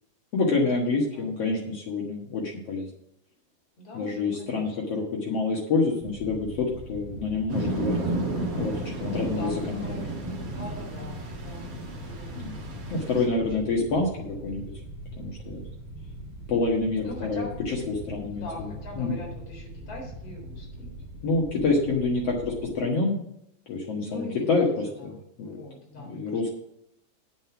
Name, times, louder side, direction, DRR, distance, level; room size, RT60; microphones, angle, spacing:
voice 1, 0.3-2.9 3.9-7.9 8.5-10.0 12.3-12.5 12.9-14.7 15.2-15.6 16.5-18.7 19.0-19.2 21.2-23.2 23.7-25.6 26.1-26.5, left 3 dB, 90° left, -2 dB, 1.3 m, -27 dB
voice 2, 3.8-4.8 9.1-10.1 10.5-13.6 17.0-17.6 18.3-20.9 24.0-26.4, left 1 dB, 35° left, -1 dB, 4.5 m, -42 dB
sound 1, 6.0-22.7, equal, 5° right, 2.0 m, -41 dB
sound 2, 7.5-13.3, right 1 dB, 40° right, 2.6 m, -32 dB
9.2 x 7.8 x 5.9 m, 0.77 s
omnidirectional pair, 5.3 m